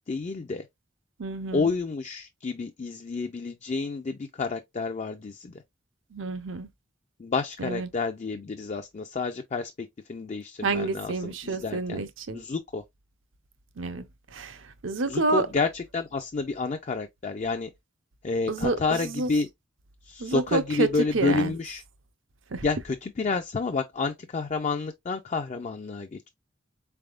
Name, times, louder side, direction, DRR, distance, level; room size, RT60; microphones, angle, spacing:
voice 1, 0.1-0.7 1.5-5.6 7.2-12.1 12.3-12.8 15.1-17.7 18.2-19.5 20.0-21.8 22.6-26.3, left 4 dB, 35° left, 0.4 m, -30 dB
voice 2, 1.2-1.7 6.1-6.7 7.6-7.9 10.6-12.4 13.8-14.0 14.3-15.5 18.5-19.3 20.2-21.5 22.5-22.6, right 3 dB, 75° right, 0.7 m, -29 dB
4.2 x 3.4 x 2.3 m
head